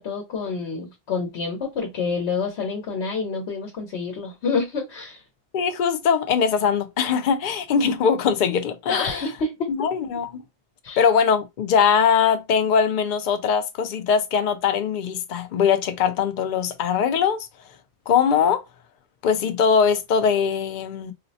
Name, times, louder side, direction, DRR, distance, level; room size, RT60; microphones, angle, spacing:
voice 1, 0.0-5.2 8.9-9.9 10.8-11.0, left 4 dB, 80° left, 1.0 m, -28 dB
voice 2, 5.5-9.3 9.8-10.4 11.0-17.5 18.1-18.6 19.2-21.1, left 6 dB, 55° left, 0.6 m, -21 dB
4.0 x 2.0 x 2.7 m
omnidirectional pair, 1.1 m